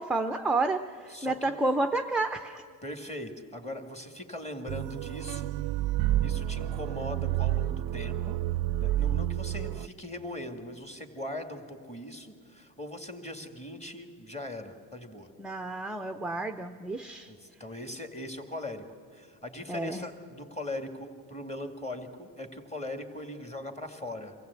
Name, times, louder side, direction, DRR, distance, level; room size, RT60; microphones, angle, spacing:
voice 1, 0.0-2.6 15.4-17.3 19.7-20.0, right 2 dB, ahead, 7 dB, 0.5 m, -30 dB
voice 2, 1.1-1.6 2.8-5.5 6.2-8.4 8.8-15.3 17.3-18.8 19.1-24.4, left 1 dB, 15° left, 5 dB, 2.1 m, -40 dB
sound 1, 4.7-9.9, right 13 dB, 55° right, 0.5 m, -29 dB
24.5 x 15.5 x 8.2 m, 2.2 s
cardioid pair, 100°, 45 cm